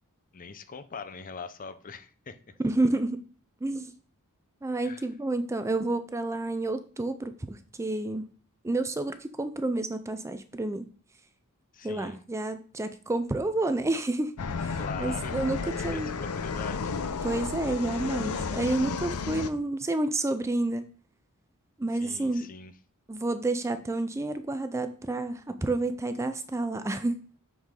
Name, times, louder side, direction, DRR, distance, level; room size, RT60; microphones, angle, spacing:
voice 1, 0.3-2.4 4.8-5.1 11.7-12.2 14.8-16.9 21.9-22.7, left 5 dB, 40° left, 11 dB, 0.6 m, -42 dB
voice 2, 2.6-3.2 3.6-3.9 4.6-8.2 8.6-10.9 11.8-14.3 14.6-16.1 17.2-20.8 21.8-22.5 23.1-27.2, right 2 dB, 15° right, 10 dB, 0.4 m, -29 dB
sound 1, 14.4-19.5, left 5 dB, 80° left, 0.6 m, -32 dB
6.4 x 6.2 x 3.7 m, 0.40 s
head